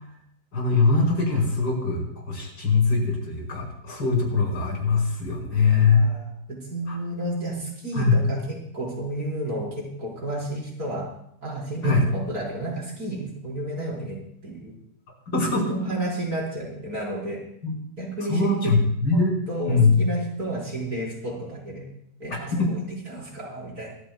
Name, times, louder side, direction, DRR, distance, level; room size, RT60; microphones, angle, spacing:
voice 1, 0.5-6.0 6.9-7.0 7.9-8.2 11.8-12.0 15.3-15.8 17.6-17.7 18.3-19.3 19.7-20.0 22.5-22.7, left 4 dB, 90° left, -3 dB, 5.5 m, -22 dB
voice 2, 5.7-11.1 11.4-14.7 15.3-17.4 18.0-18.7 19.1-19.2 19.5-21.9 22.2-23.9, right 1 dB, 55° right, -4 dB, 5.4 m, -31 dB
25.5 x 14.5 x 2.4 m, 0.70 s
omnidirectional pair, 1.9 m